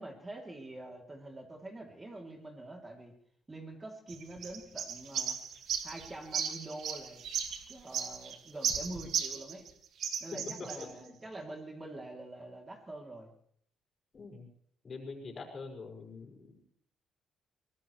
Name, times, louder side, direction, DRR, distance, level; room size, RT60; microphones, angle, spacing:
voice 1, 0.0-3.1 3.5-5.4 5.8-7.2 7.7-9.7 10.2-13.3, right 2 dB, 25° right, 1 dB, 3.0 m, -45 dB
sound 1, 4.1-9.7 10.0-10.9, right 8 dB, 75° right, 2.0 m, -36 dB
voice 2, 10.8-11.1 14.1-14.5 14.8-16.7, left 4 dB, 45° left, 1 dB, 5.3 m, -45 dB
23.5 x 18.0 x 3.2 m, 0.63 s
cardioid pair, 90°, 0 cm